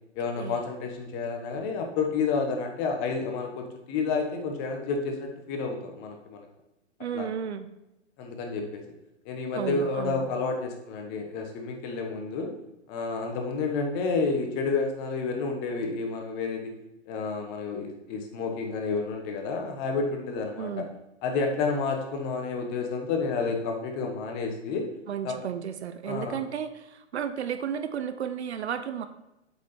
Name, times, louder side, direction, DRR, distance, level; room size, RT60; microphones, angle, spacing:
voice 1, 0.2-6.5 7.1-7.3 8.2-8.8 9.2-12.5 12.9-16.7 17.1-20.8 21.2-24.9 25.2-25.3 26.1-26.4, left 4 dB, 30° left, 3 dB, 1.2 m, -30 dB
voice 2, 7.0-7.7 9.5-10.3 20.5-20.9 25.1-29.1, right 8 dB, 65° right, 10 dB, 0.8 m, -33 dB
8.0 x 5.1 x 4.2 m, 0.92 s
hypercardioid pair, 125°, 36 cm